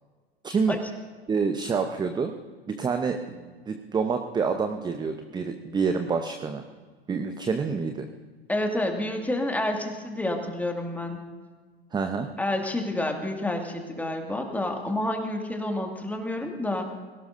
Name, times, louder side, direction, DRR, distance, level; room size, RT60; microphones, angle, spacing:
voice 1, 0.4-0.8 1.3-2.3 2.7-6.6 7.1-8.1 11.9-12.3, right 5 dB, 15° right, 7 dB, 0.8 m, -27 dB
voice 2, 8.5-11.2 12.4-16.8, left 1 dB, 5° left, 2 dB, 2.1 m, -29 dB
22.0 x 17.5 x 2.6 m, 1.5 s
figure-of-eight pair, 85°, 31 cm